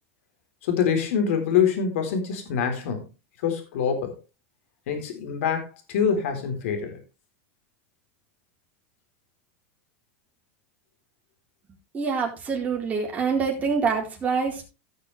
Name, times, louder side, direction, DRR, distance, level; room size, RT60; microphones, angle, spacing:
voice 1, 0.6-3.1 3.4-4.2 4.9-7.0, left 7 dB, 80° left, 5 dB, 3.9 m, -25 dB
voice 2, 11.9-14.6, right 5 dB, 20° right, 0 dB, 4.0 m, -25 dB
16.5 x 6.8 x 3.3 m, 0.29 s
supercardioid pair, 145°, 7 cm